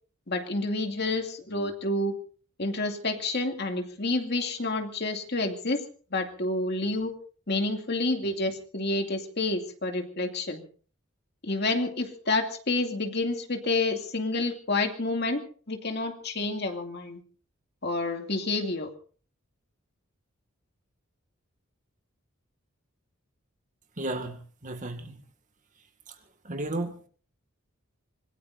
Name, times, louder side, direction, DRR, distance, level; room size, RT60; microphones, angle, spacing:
voice 1, 0.3-2.1 2.6-5.8 6.1-7.1 7.5-10.6 11.4-17.2 17.8-18.9, left 2 dB, 50° left, 5 dB, 2.4 m, -29 dB
voice 2, 24.0-25.2 26.4-27.1, right 2 dB, 35° right, 7 dB, 2.1 m, -34 dB
25.5 x 20.5 x 2.7 m, 0.42 s
head